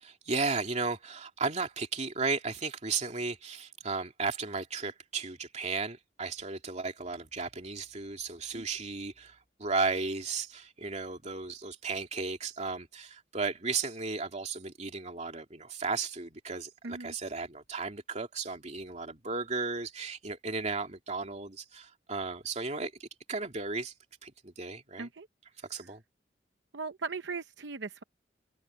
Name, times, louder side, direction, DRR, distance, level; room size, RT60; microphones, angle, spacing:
voice 1, 0.0-23.9 24.2-25.1 25.7-26.0, right 4 dB, 40° right, 2.8 m, -35 dB
voice 2, 16.8-17.1 25.0-25.3 26.7-28.0, right 4 dB, 80° right, 0.8 m, -38 dB
head